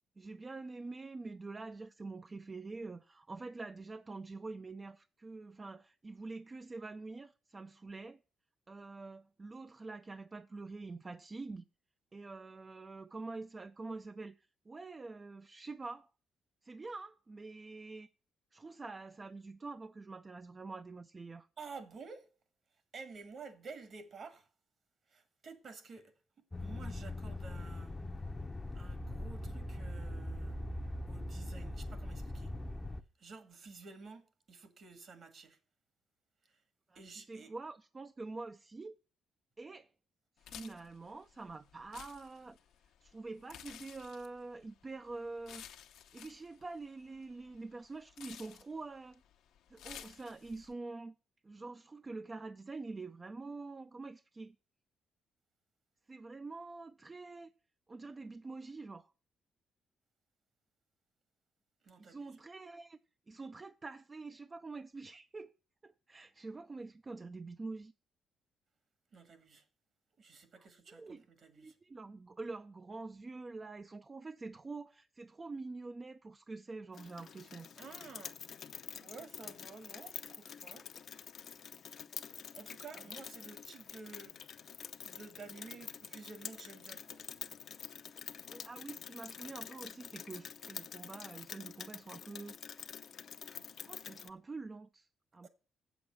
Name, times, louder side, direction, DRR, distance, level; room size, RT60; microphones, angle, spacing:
voice 1, 0.2-8.2 8.7-11.6 12.1-16.1 16.6-18.1 18.5-21.5 36.9-38.9 39.6-39.9 40.5-42.6 43.0-45.6 46.1-49.2 49.7-51.1 51.4-54.5 56.1-57.5 57.9-59.1 62.0-63.0 63.3-65.5 65.8-67.9 70.9-71.2 71.6-77.7 88.5-92.6 93.5-95.1 95.3-95.5, right 3 dB, 30° right, 0.4 m, -46 dB
voice 2, 21.6-22.3 22.9-24.5 25.1-27.9 28.8-30.8 31.1-32.5 33.2-35.6 36.4-36.6 37.0-37.5 61.8-62.4 69.1-69.6 70.2-71.8 77.8-78.4 78.9-80.9 82.3-84.4 84.7-87.3 95.4-95.5, right 4 dB, 55° right, 1.8 m, -52 dB
sound 1, 26.5-33.0, left 1 dB, 20° left, 0.6 m, -41 dB
sound 2, 40.4-50.7, left 10 dB, 85° left, 0.9 m, -55 dB
Rain, 76.9-94.3, left 8 dB, 60° left, 0.6 m, -48 dB
7.9 x 7.0 x 6.2 m
cardioid pair, 90°, 0 cm